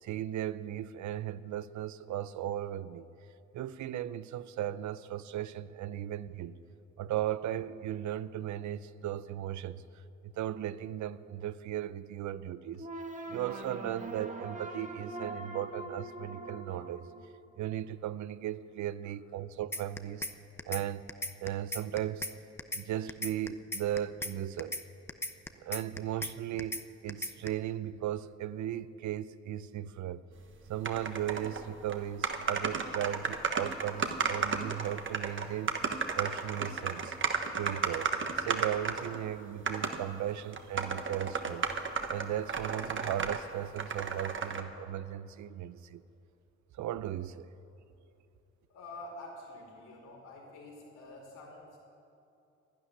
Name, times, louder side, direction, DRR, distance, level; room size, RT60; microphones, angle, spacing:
voice 1, 0.0-3.1 3.5-6.6 7.0-9.8 10.4-12.9 13.3-17.1 17.6-20.2 20.6-21.0 21.4-22.3 22.7-24.7 25.5-30.2 30.7-35.8 36.1-37.2 37.6-38.1 38.4-41.7 42.1-46.0 46.8-47.5, right 11 dB, 70° right, 0.6 m, -36 dB
sound 1, 12.8-17.8, right 2 dB, 25° right, 1.6 m, -42 dB
sound 2, 19.7-20.3 20.6-20.8 21.1-22.3 22.6-22.8 23.1-24.3 24.6-24.8 25.1-26.3 26.6-26.8 27.1-27.5, left 1 dB, 10° left, 0.8 m, -36 dB
sound 3, 30.8-31.6 31.9-32.0 32.2-39.2 39.7-40.0 40.5-43.4 43.8-44.6, right 5 dB, 40° right, 1.3 m, -33 dB
voice 2, 48.7-51.8, left 2 dB, 85° left, 5.0 m, -47 dB
12.0 x 11.5 x 9.9 m
cardioid pair, 90°, 30 cm